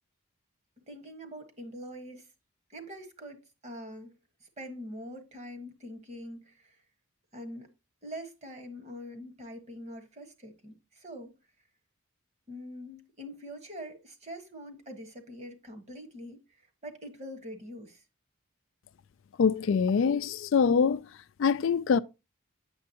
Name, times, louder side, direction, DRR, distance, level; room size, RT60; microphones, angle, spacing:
voice 1, 0.9-2.3 2.7-4.1 4.4-6.8 7.3-7.7 8.0-11.3 12.5-18.0, equal, 30° right, 1.4 m, -44 dB
voice 2, 19.4-21.0 21.4-22.0, left 6 dB, 60° left, 0.3 m, -24 dB
8.5 x 7.1 x 2.8 m
head